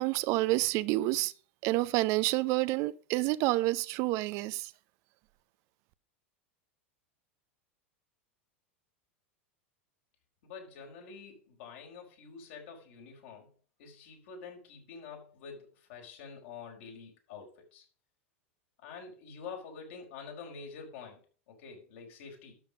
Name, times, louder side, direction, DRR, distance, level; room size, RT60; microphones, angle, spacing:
voice 1, 0.0-1.3 1.6-4.7, right 19 dB, 50° right, 0.7 m, -28 dB
voice 2, 10.4-13.5 13.8-17.8 18.8-21.2 21.5-22.6, left 5 dB, 60° left, 5.2 m, -47 dB
12.5 x 6.9 x 5.2 m
figure-of-eight pair, 90°, 7 cm